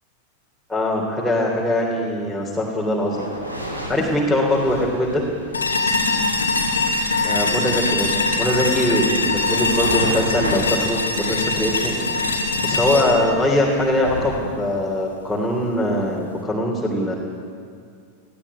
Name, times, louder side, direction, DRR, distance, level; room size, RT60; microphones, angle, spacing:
voice 1, 0.7-3.3 3.9-5.3 7.2-11.9 12.6-17.1, left 1 dB, 5° left, -5 dB, 3.3 m, -22 dB
sound 1, 2.9-14.4, equal, 85° right, 3.6 m, -34 dB
sound 2, 5.5-14.6, left 3 dB, 75° left, 2.4 m, -23 dB
20.5 x 15.0 x 9.7 m, 2.2 s
figure-of-eight pair, 90°, 0 cm